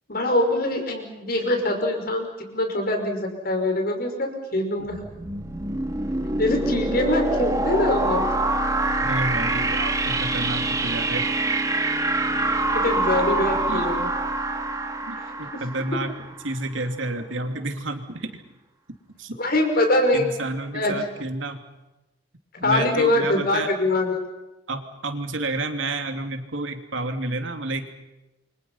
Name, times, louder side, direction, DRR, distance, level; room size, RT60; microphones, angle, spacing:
voice 1, 0.1-5.0 6.4-8.2 12.7-14.1 15.2-15.3 19.4-20.3 20.7-20.9 22.6-24.2, left 1 dB, 50° left, 4 dB, 5.8 m, -23 dB
sound 1, 4.9-16.6, right 2 dB, 20° right, 2.3 m, -25 dB
voice 2, 9.0-11.3 13.7-13.9 15.1-16.1 16.4-18.4 19.2-19.3 20.1-21.6 22.6-23.7 24.7-27.9, right 2 dB, 85° right, 6 dB, 2.9 m, -30 dB
29.0 x 24.5 x 5.7 m, 0.99 s
head